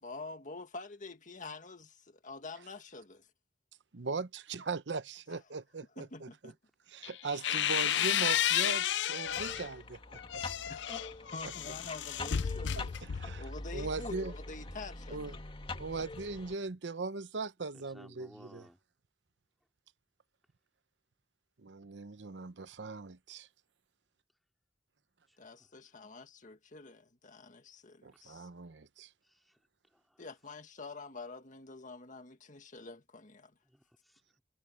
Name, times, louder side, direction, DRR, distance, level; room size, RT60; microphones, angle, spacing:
voice 1, 0.0-3.3 6.0-6.6 10.7-13.0 13.4-15.4 25.4-28.5 30.2-33.5, left 3 dB, 45° left, 1.8 m, -47 dB
voice 2, 3.9-6.5 6.9-10.4 11.4-11.5 12.8-14.3 15.1-15.3 15.8-18.7 21.6-23.5 28.0-29.1, right 4 dB, 85° right, 0.8 m, -40 dB
sound 1, 7.0-9.7 10.2-13.5, left 10 dB, 85° left, 0.5 m, -32 dB
sound 2, 9.2-16.5, left 2 dB, 30° left, 2.3 m, -44 dB
voice 3, 17.7-18.8 25.3-26.1 29.2-29.6 29.9-30.2 33.6-34.4, equal, ahead, 4.3 m, -59 dB
head